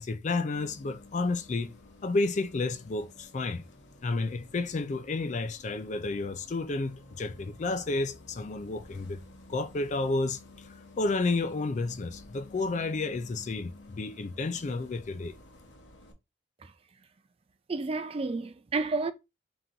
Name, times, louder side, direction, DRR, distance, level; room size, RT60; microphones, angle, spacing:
voice 1, 0.0-1.7 2.0-3.6 4.0-9.2 9.5-15.3, left 3 dB, 40° left, 0.4 m, -31 dB
Bus, 0.5-16.1, left 2 dB, 90° left, 0.8 m, -52 dB
voice 2, 17.7-19.1, right 3 dB, 30° right, 0.4 m, -31 dB
3.8 x 2.9 x 3.8 m
head